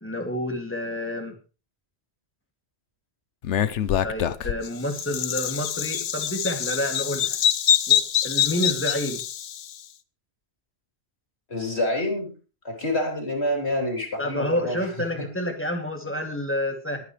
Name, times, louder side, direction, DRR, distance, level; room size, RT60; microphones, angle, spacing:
voice 1, 0.0-1.3 4.0-7.4 7.9-9.2 14.2-17.0, left 1 dB, 10° left, 3 dB, 2.5 m, -29 dB
Bird vocalization bird call bird song, 3.4-9.7, left 9 dB, 85° left, 1.1 m, -25 dB
voice 2, 11.5-12.3 12.6-14.9, left 1 dB, 65° left, 2 dB, 3.9 m, -27 dB
21.5 x 9.5 x 3.3 m, 0.35 s
omnidirectional pair, 1.2 m